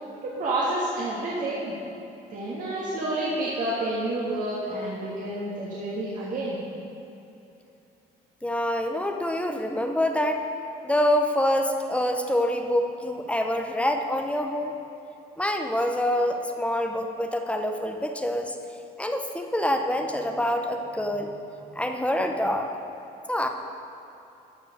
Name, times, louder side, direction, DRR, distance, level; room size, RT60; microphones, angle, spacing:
voice 1, 0.2-1.7 2.3-6.6, right 1 dB, 50° right, -7 dB, 1.6 m, -29 dB
voice 2, 8.4-10.4 10.8-14.7 15.4-18.6 19.0-21.4 21.8-22.7 23.3-23.5, left 1 dB, 5° left, 4 dB, 0.6 m, -26 dB
13.0 x 4.8 x 5.0 m, 2.8 s
cardioid pair, 110°, 17 cm